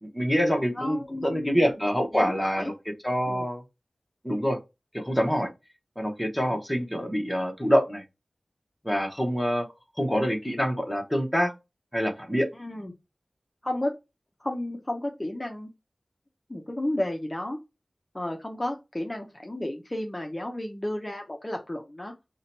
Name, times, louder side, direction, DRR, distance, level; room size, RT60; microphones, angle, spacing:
voice 1, 0.0-2.6 3.0-3.6 4.2-4.6 4.9-5.5 6.0-8.0 8.8-9.7 10.0-11.5 11.9-12.5, equal, ahead, 2 dB, 0.9 m, -26 dB
voice 2, 0.5-1.8 2.1-2.7 3.3-3.5 6.5-6.6 12.5-12.9 13.6-13.9 14.4-15.7 16.5-17.6 18.1-22.1, left 1 dB, 25° left, 2 dB, 0.5 m, -32 dB
2.7 x 2.2 x 4.1 m, 0.24 s
wide cardioid pair, 75°, 0 cm